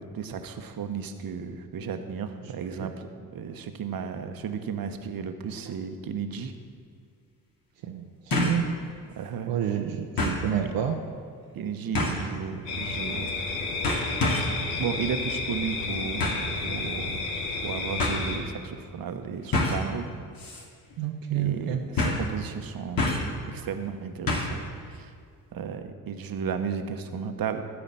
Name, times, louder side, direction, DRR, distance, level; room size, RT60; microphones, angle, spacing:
voice 1, 0.0-3.1 3.3-6.5 9.1-9.6 11.5-13.4 14.8-17.2 17.6-20.1 21.3-23.1 23.5-24.6 24.9-25.1 25.5-27.6, right 6 dB, 50° right, 7 dB, 1.1 m, -34 dB
sound 1, 6.4-6.5 8.3-8.6 9.1-9.2 10.2-10.4 11.9-12.3 13.2-13.5 13.8-14.6 16.2-16.5 17.5-17.6 18.0-18.2 19.5-19.9 20.4-20.6 20.9-21.0 22.0-22.3 23.0-23.4 24.3-24.6 24.9-25.0, left 2 dB, 50° left, 2.4 m, -27 dB
voice 2, 7.8-8.7 9.5-11.0 21.0-21.8, right 9 dB, 75° right, 3 dB, 0.9 m, -29 dB
sound 2, 12.7-18.4, left 3 dB, 90° left, 1.4 m, -31 dB
13.0 x 4.9 x 8.6 m, 2.1 s
hypercardioid pair, 55°, 43 cm